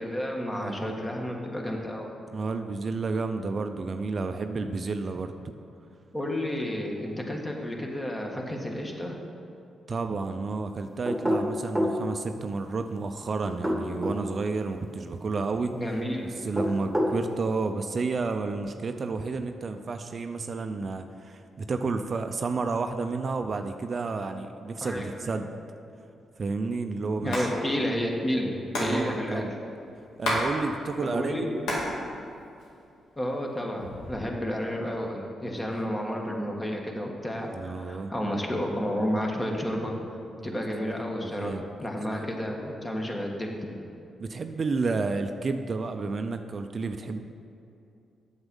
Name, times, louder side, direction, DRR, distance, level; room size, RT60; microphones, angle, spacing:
voice 1, 0.0-2.1 6.1-9.2 15.7-16.2 24.8-25.4 27.2-28.5 28.8-29.6 31.0-31.6 33.2-40.0 40.4-41.5 41.8-43.6, equal, 20° left, 0 dB, 1.6 m, -31 dB
voice 2, 0.6-1.0 2.3-5.3 9.9-15.7 16.4-25.4 26.4-27.5 28.8-29.5 30.2-31.5 37.4-38.1 40.4-40.5 41.2-41.6 42.1-42.3 44.2-47.2, right 4 dB, 50° right, 7 dB, 0.5 m, -31 dB
sound 1, 11.0-12.0 13.4-14.2 16.4-17.2, equal, 5° right, 1.7 m, -26 dB
Hands, 27.1-27.5 27.7-27.8 28.0-30.5 30.8-31.9 32.3-33.1 33.6-34.2, left 1 dB, 85° left, 2.1 m, -31 dB
7.9 x 7.2 x 5.4 m, 2.6 s
supercardioid pair, 55°, 0 cm